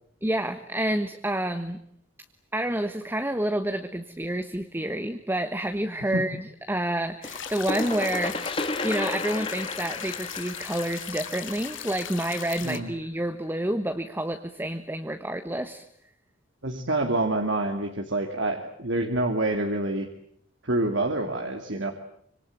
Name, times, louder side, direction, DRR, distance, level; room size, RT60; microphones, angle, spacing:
voice 1, 0.2-1.8 2.5-15.8, right 1 dB, 10° right, 8 dB, 1.3 m, -29 dB
sound 1, 7.2-12.8, left 9 dB, 75° left, 2.6 m, -38 dB
sound 2, 7.2-12.8, left 2 dB, 25° left, 1.6 m, -33 dB
voice 2, 16.6-20.1 20.6-21.9, right 2 dB, 65° right, 4 dB, 2.5 m, -27 dB
26.0 x 25.5 x 8.9 m, 0.67 s
head